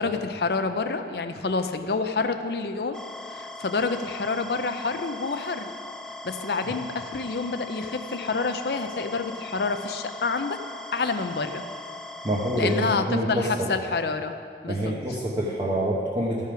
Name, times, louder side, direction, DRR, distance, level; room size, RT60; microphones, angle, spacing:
voice 1, 0.0-3.0 3.3-5.7 6.2-10.6 10.9-11.6 12.6-14.4 14.6-14.9, left 4 dB, 65° left, 8 dB, 0.6 m, -28 dB
sound 1, 2.9-13.0, left 2 dB, 5° left, 0.3 m, -40 dB
voice 2, 12.2-13.7 14.7-16.5, right 1 dB, 25° right, -6 dB, 1.0 m, -26 dB
14.5 x 5.6 x 5.0 m, 2.4 s
head